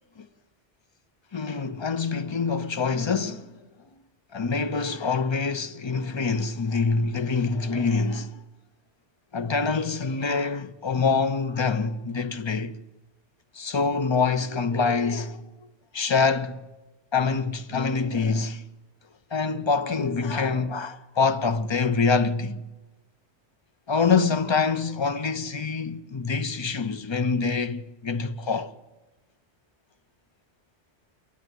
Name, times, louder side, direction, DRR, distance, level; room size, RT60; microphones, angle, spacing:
voice 1, 1.3-3.6 4.3-8.4 9.3-12.8 13.5-15.5 15.9-16.7 17.1-18.7 19.3-22.6 23.9-28.7, left 4 dB, 30° left, 0.7 m, -25 dB
27.5 x 10.5 x 9.3 m
omnidirectional pair, 1.1 m